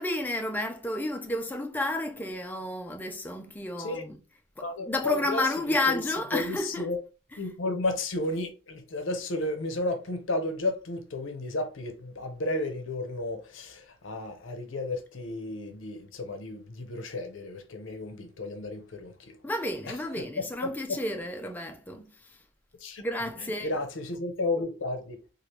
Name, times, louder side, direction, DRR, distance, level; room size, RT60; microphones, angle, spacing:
voice 1, 0.0-4.2 4.6-6.9 19.4-22.4 23.0-23.7, left 1 dB, 10° left, 0.3 m, -31 dB
voice 2, 4.6-6.0 6.3-7.0 7.4-19.4 19.8-20.0 20.4-20.7 22.8-23.1 23.4-25.2, left 2 dB, 65° left, 0.6 m, -33 dB
3.1 x 2.5 x 2.8 m
head